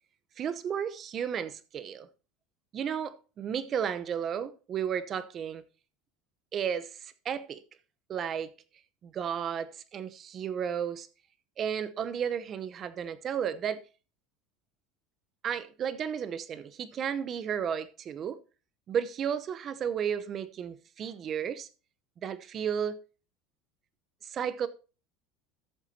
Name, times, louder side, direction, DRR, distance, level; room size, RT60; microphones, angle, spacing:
voice 1, 0.4-2.1 2.7-5.6 6.5-7.6 8.1-8.5 9.0-11.1 11.6-13.8 15.4-18.4 18.9-21.7 22.2-23.0 24.2-24.7, right 8 dB, 40° right, 0.8 m, -33 dB
13.5 x 7.1 x 2.8 m
supercardioid pair, 100°, 0 cm